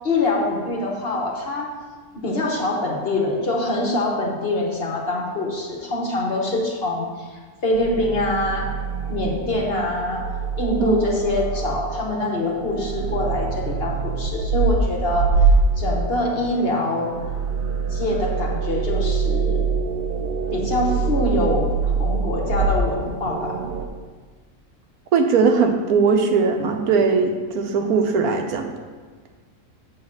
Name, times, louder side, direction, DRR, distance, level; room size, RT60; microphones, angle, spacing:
voice 1, 0.0-1.7 2.1-7.3 7.6-8.7 9.1-10.2 10.6-15.3 15.8-17.1 17.9-19.6 20.5-23.6, left 2 dB, 45° left, -1 dB, 1.2 m, -24 dB
sound 1, 7.7-23.9, right 4 dB, 65° right, 0.5 m, -24 dB
voice 2, 25.1-28.7, right 5 dB, 80° right, 4 dB, 1.2 m, -19 dB
7.2 x 4.0 x 6.4 m, 1.4 s
omnidirectional pair, 1.5 m